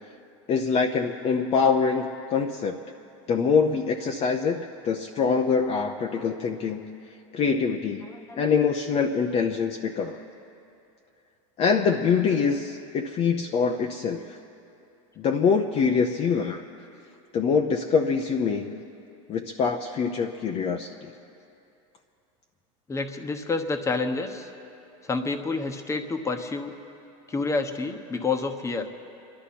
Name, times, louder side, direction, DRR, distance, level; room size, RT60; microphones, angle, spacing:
voice 1, 0.5-2.8 3.3-7.0 7.3-8.1 8.4-10.2 11.6-14.4 15.2-16.6 17.3-18.8 19.3-21.1, left 5 dB, 35° left, 3 dB, 0.8 m, -24 dB
voice 2, 8.0-8.5 22.9-24.5 25.0-26.7 27.3-28.9, left 3 dB, 15° left, 7 dB, 1.1 m, -29 dB
28.0 x 11.5 x 4.3 m, 2.7 s
supercardioid pair, 120°, 18 cm